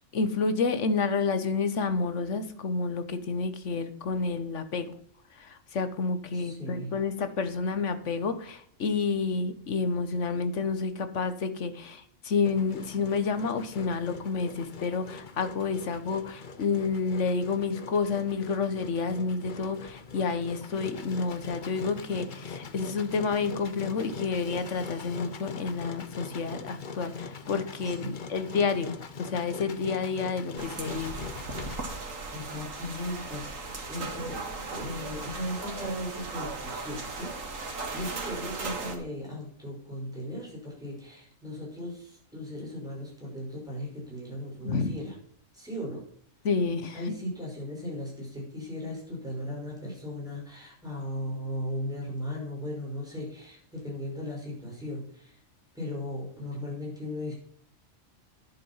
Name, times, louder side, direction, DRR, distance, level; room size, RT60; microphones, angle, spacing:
voice 1, 0.1-4.9 5.4-31.1 44.6-44.9 46.4-47.0, left 4 dB, 65° left, 10 dB, 1.5 m, -29 dB
voice 2, 6.3-7.0 27.8-28.1 31.9-34.4 34.7-37.3 37.7-45.1 45.5-46.0 46.9-55.4 55.7-57.3, left 1 dB, 5° right, -5 dB, 5.7 m, -37 dB
Engine, 12.4-31.8, left 5 dB, 40° left, 1.0 m, -42 dB
sound 1, 30.6-39.0, right 3 dB, 80° right, 2.2 m, -37 dB
11.0 x 7.5 x 5.7 m, 0.63 s
omnidirectional pair, 1.3 m